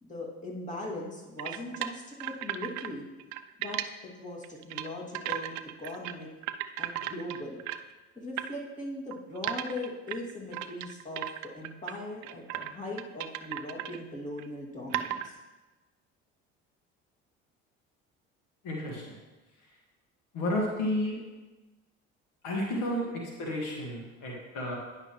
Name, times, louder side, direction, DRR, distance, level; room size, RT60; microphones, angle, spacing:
voice 1, 0.0-3.0 3.6-3.8 4.2-6.3 6.8-7.6 8.2-11.3 11.5-15.3, left 1 dB, 25° left, -4 dB, 2.2 m, -39 dB
sound 1, 1.4-2.9 3.2-3.9 4.4-4.9 5.1-6.1 6.4-7.9 8.4-8.5 9.1-12.0 12.2-12.7 13.0-14.0 14.4-14.5 14.9-15.3, right 13 dB, 65° right, 0.5 m, -35 dB
voice 2, 18.6-19.0 20.3-21.2 22.4-24.8, left 1 dB, 70° left, -2 dB, 1.8 m, -31 dB
10.0 x 5.7 x 3.0 m, 1.2 s
hypercardioid pair, 70°, 31 cm